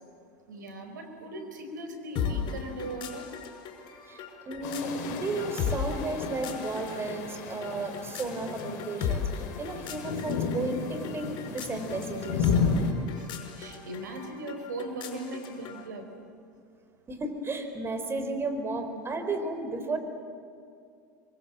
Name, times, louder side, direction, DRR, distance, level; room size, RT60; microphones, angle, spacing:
voice 1, 0.5-3.3 13.1-13.3 13.6-16.1, right 1 dB, 85° right, 6 dB, 4.6 m, -38 dB
sound 1, 2.2-15.9, left 7 dB, 50° left, 5.5 m, -37 dB
voice 2, 4.1-12.5 17.1-20.0, right 2 dB, 25° right, 7 dB, 4.7 m, -33 dB
sound 2, 4.6-12.9, left 5 dB, 65° left, 3.3 m, -33 dB
26.5 x 24.0 x 7.8 m, 2.4 s
hypercardioid pair, 90°, 10 cm